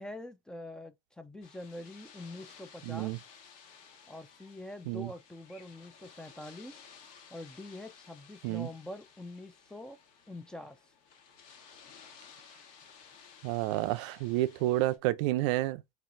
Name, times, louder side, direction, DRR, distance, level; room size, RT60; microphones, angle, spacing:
voice 1, 0.0-3.1 4.1-6.8 7.3-10.0 10.3-10.8, left 1 dB, 5° left, 0.5 m, -45 dB
sound 1, 1.4-15.0, left 6 dB, 60° left, 1.5 m, -56 dB
voice 2, 2.9-3.2 4.9-5.1 8.4-8.7 13.4-15.8, right 16 dB, 85° right, 0.5 m, -30 dB
4.5 x 4.0 x 2.5 m
cardioid pair, 145°, 15 cm